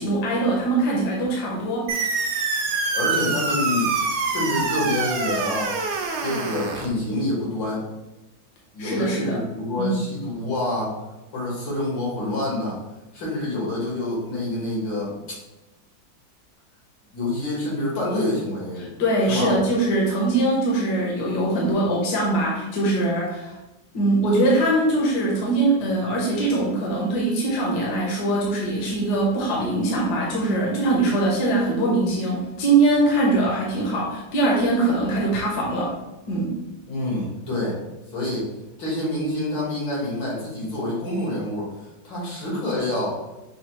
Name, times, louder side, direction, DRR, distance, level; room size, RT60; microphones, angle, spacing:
voice 1, 0.0-1.9 8.8-9.4 9.8-10.0 18.8-23.5 23.9-35.9 36.3-36.6, right 2 dB, 70° left, -3 dB, 1.4 m, -22 dB
sound 1, 1.9-6.9, right 4 dB, 65° right, 1.0 m, -25 dB
voice 2, 2.9-3.9 4.3-5.7 6.2-7.8 8.7-11.0 11.3-12.8 13.1-15.4 17.1-18.9 19.3-19.6 36.9-37.8 38.1-38.5 38.8-41.7 42.0-43.2, left 1 dB, 85° left, -4 dB, 2.3 m, -27 dB
6.2 x 2.3 x 3.0 m, 0.99 s
omnidirectional pair, 2.0 m